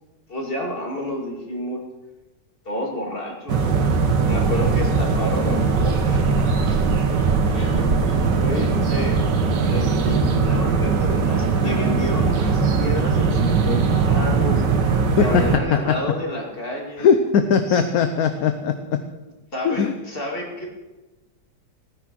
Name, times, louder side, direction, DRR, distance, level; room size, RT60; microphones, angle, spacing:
voice 1, 0.3-1.8 2.6-3.7 4.3-6.7 7.5-9.2 9.6-14.6 15.2-17.1 17.7-17.8 19.5-20.7, left 1 dB, 30° left, 0 dB, 2.7 m, -30 dB
sound 1, 3.5-15.6, right 4 dB, 80° right, 1.8 m, -20 dB
voice 2, 17.0-18.7 19.6-19.9, left 6 dB, 65° left, 8 dB, 1.2 m, -19 dB
16.0 x 9.7 x 6.2 m, 1.1 s
omnidirectional pair, 1.8 m